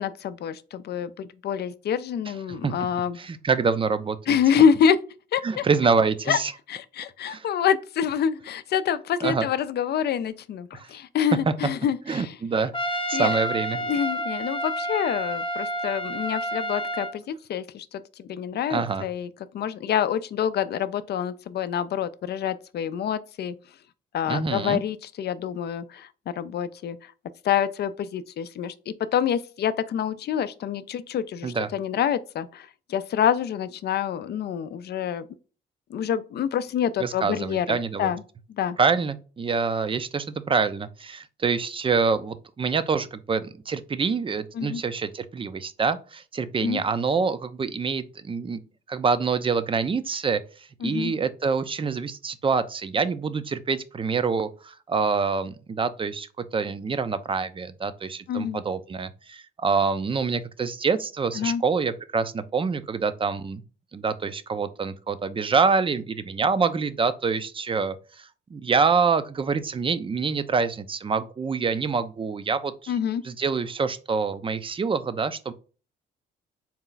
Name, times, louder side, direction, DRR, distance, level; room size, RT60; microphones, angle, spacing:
voice 1, 0.0-3.2 4.3-5.0 5.3-5.6 6.3-6.4 6.7-12.4 13.1-13.3 13.9-19.3 19.5-23.6 24.1-26.1 26.4-27.0 27.4-35.3 35.9-38.2 38.6-38.8 44.6-44.8 46.6-46.8 50.8-51.1 58.3-58.6 61.4-61.6 72.9-73.2, left 8 dB, 55° left, 0.4 m, -26 dB
voice 2, 3.2-4.4 5.4-6.5 7.3-7.5 9.2-9.5 10.7-10.9 11.5-11.6 12.1-12.7 13.1-13.8 18.7-19.1 24.3-24.8 31.4-31.7 37.0-38.1 38.8-48.6 48.9-50.4 50.8-63.6 63.9-72.9 73.2-75.5, right 5 dB, 25° right, 0.5 m, -26 dB
Trumpet, 12.7-17.2, equal, 25° left, 0.7 m, -29 dB
4.2 x 2.3 x 3.8 m
cardioid pair, 90°, 20 cm